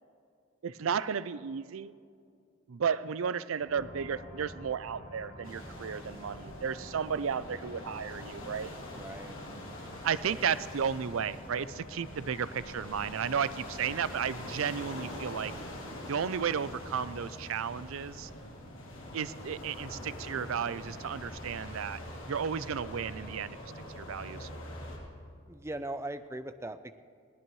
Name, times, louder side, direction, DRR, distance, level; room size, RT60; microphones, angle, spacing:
voice 1, 0.6-1.9 2.7-8.7 10.0-15.5 16.1-18.3 19.1-22.0 22.3-24.5, right 7 dB, 75° right, 16 dB, 0.4 m, -33 dB
sound 1, 3.6-17.3, equal, 50° left, 4.1 m, -48 dB
sound 2, 5.4-25.0, left 1 dB, 70° left, 3.1 m, -44 dB
voice 2, 8.9-9.4 10.3-10.5 25.5-27.0, right 1 dB, 10° right, 11 dB, 0.4 m, -40 dB
21.5 x 17.0 x 3.1 m, 2.4 s
head